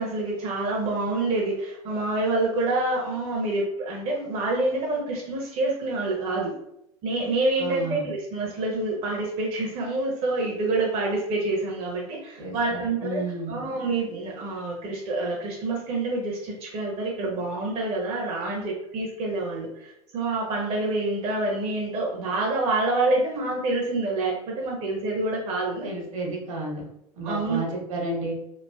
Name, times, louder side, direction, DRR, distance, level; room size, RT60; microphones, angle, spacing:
voice 1, 0.0-6.5 7.0-13.2 13.5-25.9 27.2-27.6, right 2 dB, 35° right, -2 dB, 0.6 m, -27 dB
voice 2, 7.6-8.1 12.4-13.6 25.8-26.9 27.1-28.4, right 2 dB, 60° right, -2 dB, 1.0 m, -32 dB
3.2 x 2.4 x 2.3 m, 0.82 s
figure-of-eight pair, 85°, 19 cm